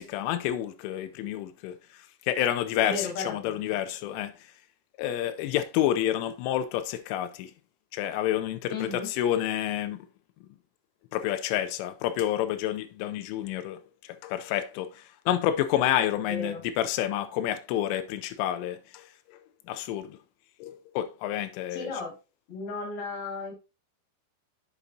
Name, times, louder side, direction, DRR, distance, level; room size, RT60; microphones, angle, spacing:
voice 1, 0.0-1.8 2.3-4.3 5.0-7.5 7.9-10.0 11.1-13.8 14.2-14.9 15.3-19.0 19.7-20.1 20.6-21.9, left 12 dB, 85° left, 3.1 m, -29 dB
voice 2, 2.8-3.8 8.7-9.1 16.3-16.6 21.7-22.1 22.5-23.5, left 4 dB, 35° left, 2.7 m, -35 dB
8.3 x 7.0 x 2.7 m
omnidirectional pair, 5.6 m